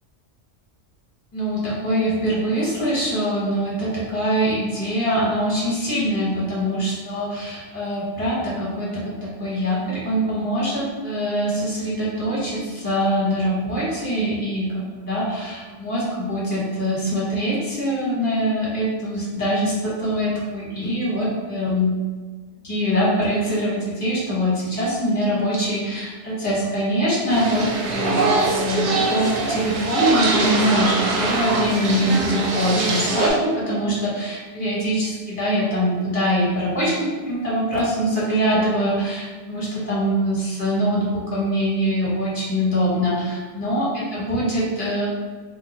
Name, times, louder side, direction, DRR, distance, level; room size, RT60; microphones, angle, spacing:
voice 1, 1.3-21.9 22.6-45.1, equal, 10° left, -8 dB, 0.8 m, -23 dB
sound 1, 27.3-33.3, right 3 dB, 60° right, 0.6 m, -23 dB
2.6 x 2.2 x 4.0 m, 1.4 s
omnidirectional pair, 1.2 m